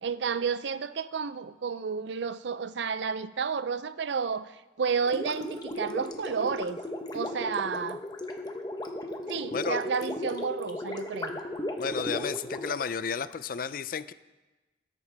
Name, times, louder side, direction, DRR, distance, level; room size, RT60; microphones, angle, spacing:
voice 1, 0.0-4.5 4.8-6.8 7.1-8.0 9.3-11.4, right 6 dB, 70° right, 15 dB, 0.5 m, -31 dB
Gurgling, 5.0-13.4, left 1 dB, 20° left, 0.9 m, -36 dB
voice 2, 11.8-14.1, left 6 dB, 50° left, 15 dB, 0.4 m, -32 dB
20.0 x 10.5 x 3.4 m, 1.1 s
head